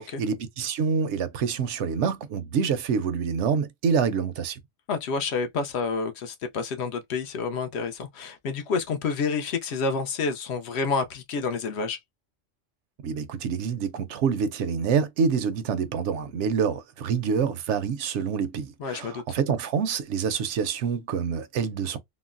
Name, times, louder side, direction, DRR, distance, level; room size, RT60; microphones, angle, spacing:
voice 1, 0.2-4.6 13.0-22.0, right 6 dB, 75° right, 0.8 m, -26 dB
voice 2, 4.9-12.0 18.8-19.2, left 4 dB, 65° left, 0.8 m, -29 dB
3.8 x 2.0 x 2.4 m
omnidirectional pair, 1.2 m